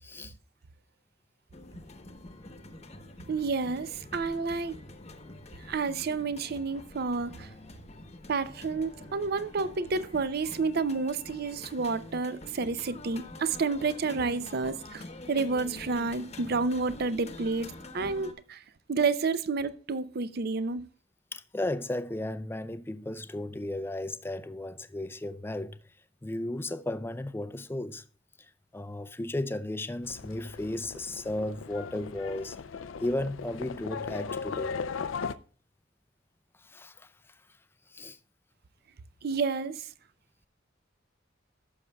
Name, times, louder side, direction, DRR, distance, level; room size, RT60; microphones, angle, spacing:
voice 1, 0.0-0.4 21.3-25.8 26.2-28.0 28.7-32.6 33.0-34.8 36.6-37.1 37.9-38.2, left 1 dB, 10° left, 0.4 m, -34 dB
sound 1, 1.5-18.3, left 2 dB, 35° left, 1.0 m, -46 dB
voice 2, 3.3-4.8 5.7-7.5 8.3-18.6 18.9-20.8 39.2-39.9, right 4 dB, 55° right, 0.5 m, -30 dB
Livestock farm animals working animals, 30.0-35.3, left 5 dB, 85° left, 0.5 m, -37 dB
14.5 x 6.4 x 2.3 m
head